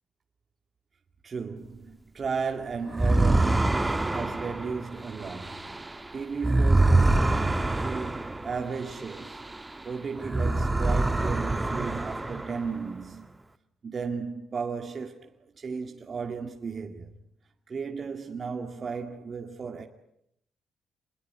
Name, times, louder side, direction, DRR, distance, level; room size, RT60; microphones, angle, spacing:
voice 1, 1.2-13.4 13.8-17.1 17.7-19.9, right 5 dB, 40° right, 2.2 m, -35 dB
sound 1, 2.9-9.8 10.2-12.9, right 2 dB, 15° right, 1.3 m, -26 dB
28.0 x 21.5 x 9.5 m
cardioid pair, 90°, 0 cm